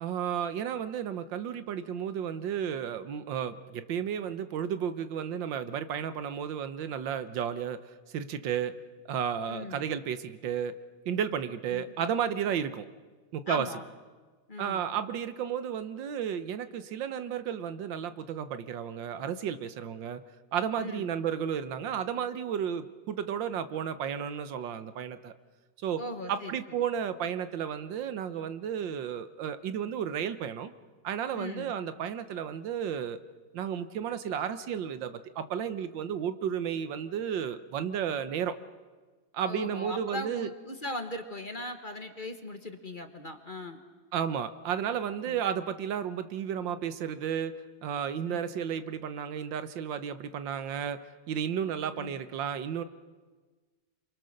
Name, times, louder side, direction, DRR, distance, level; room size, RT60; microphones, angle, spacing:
voice 1, 0.0-7.8 8.1-8.7 9.1-10.8 11.1-12.9 13.3-13.7 14.6-20.2 20.5-25.3 25.8-26.0 26.3-30.7 31.0-33.2 33.5-38.5 39.3-40.5 44.1-47.5 47.8-51.0 51.3-52.8, right 8 dB, 85° right, 12 dB, 1.7 m, -33 dB
voice 2, 9.5-9.9 11.7-11.8 13.5-13.8 14.5-14.8 20.8-21.2 26.0-26.6 31.3-31.7 39.5-43.8 45.2-45.4 48.2-48.5 52.0-52.2, left 1 dB, 30° left, 6 dB, 1.3 m, -39 dB
28.0 x 24.0 x 6.5 m, 1.4 s
omnidirectional pair, 2.0 m